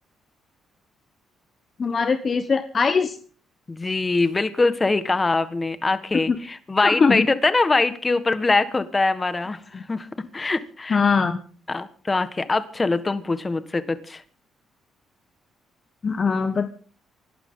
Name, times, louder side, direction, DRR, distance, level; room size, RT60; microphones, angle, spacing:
voice 1, 1.8-3.2 6.3-6.4 6.8-7.3 9.7-9.8 10.9-11.4 16.0-16.7, left 5 dB, 40° left, 9 dB, 1.1 m, -21 dB
voice 2, 3.7-10.1 10.3-11.0 11.7-14.2, left 3 dB, 25° left, 12 dB, 1.6 m, -23 dB
26.0 x 12.0 x 3.9 m, 0.42 s
cardioid pair, 90°, 0 cm